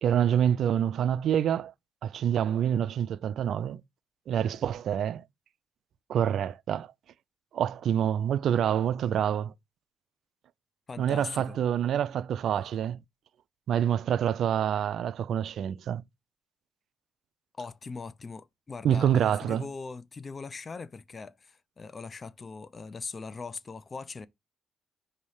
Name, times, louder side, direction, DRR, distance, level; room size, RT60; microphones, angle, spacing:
voice 1, 0.0-1.7 2.0-3.8 4.3-5.2 6.1-6.9 7.5-9.5 11.0-13.0 13.7-16.0 18.8-19.6, right 9 dB, 70° right, 0.4 m, -27 dB
voice 2, 10.9-11.6 17.5-24.3, left 4 dB, 35° left, 0.5 m, -40 dB
5.2 x 3.3 x 5.5 m
cardioid pair, 90°, 0 cm